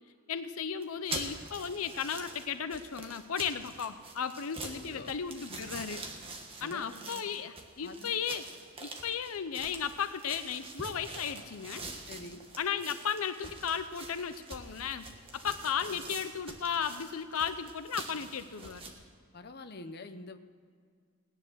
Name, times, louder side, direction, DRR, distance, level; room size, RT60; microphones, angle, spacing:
voice 1, 0.3-6.0 6.6-8.4 8.8-11.8 12.6-15.1 15.3-18.8, left 7 dB, 80° left, 11 dB, 0.6 m, -35 dB
sound 1, 0.8-18.9, right 3 dB, 25° right, 1.5 m, -45 dB
voice 2, 6.6-7.3 7.8-8.1 12.1-12.4 19.3-20.4, left 3 dB, 45° left, 8 dB, 0.8 m, -46 dB
18.0 x 10.0 x 6.2 m, 2.1 s
head